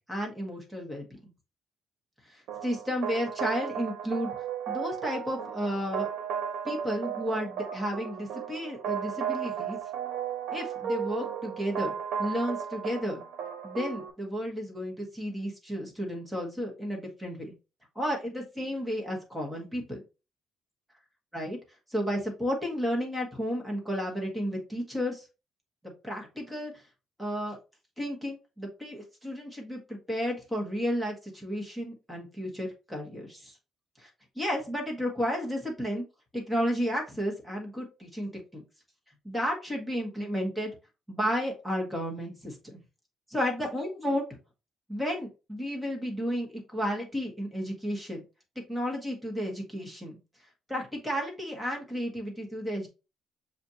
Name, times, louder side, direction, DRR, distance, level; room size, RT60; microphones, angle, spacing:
voice 1, 0.1-1.2 2.3-4.3 4.7-6.1 6.6-9.8 10.5-13.2 13.6-17.5 17.9-20.0 21.3-21.6 21.9-25.3 26.0-26.8 27.2-27.6 28.0-33.5 34.0-34.1 34.3-36.0 36.3-38.6 39.2-40.7 41.1-42.8 43.3-44.2 44.9-48.2 48.7-50.2 50.7-52.9, equal, ahead, 0 dB, 1.3 m, -32 dB
sound 1, 2.5-14.1, right 8 dB, 90° right, 0.8 m, -35 dB
6.8 x 2.5 x 2.8 m, 0.30 s
cardioid pair, 150°, 0 cm